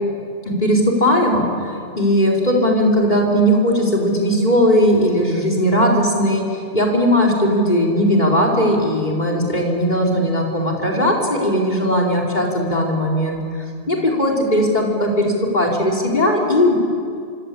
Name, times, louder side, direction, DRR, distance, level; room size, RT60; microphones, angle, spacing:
voice 1, 0.4-1.4 2.0-6.5 6.7-13.4 13.9-16.7, equal, 45° left, 0 dB, 5.0 m, -18 dB
25.5 x 25.0 x 8.7 m, 2.3 s
omnidirectional pair, 1.1 m